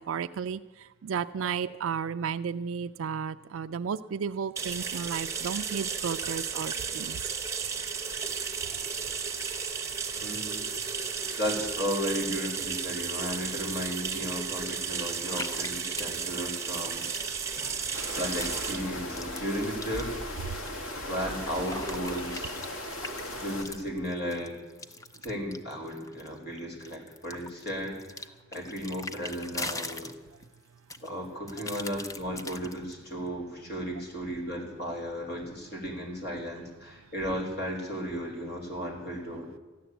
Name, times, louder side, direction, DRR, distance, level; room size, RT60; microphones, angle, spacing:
voice 1, 0.1-0.6 1.0-7.2 17.6-17.7, right 6 dB, 75° right, 10 dB, 0.4 m, -33 dB
sound 1, 4.6-24.0, right 5 dB, 15° right, 1.1 m, -35 dB
voice 2, 10.2-10.6 11.4-17.3 18.1-20.1 21.1-22.6 23.4-24.5 25.2-30.1 31.0-39.6, equal, 50° left, 0 dB, 3.7 m, -35 dB
sound 2, 14.5-14.7 15.3-18.6 18.9-20.7 21.1-26.4 26.8-30.5 30.9-32.9, left 2 dB, 15° left, 0.5 m, -42 dB
sound 3, 17.9-23.6, left 1 dB, 80° left, 1.9 m, -37 dB
14.0 x 10.5 x 8.0 m, 1.2 s
head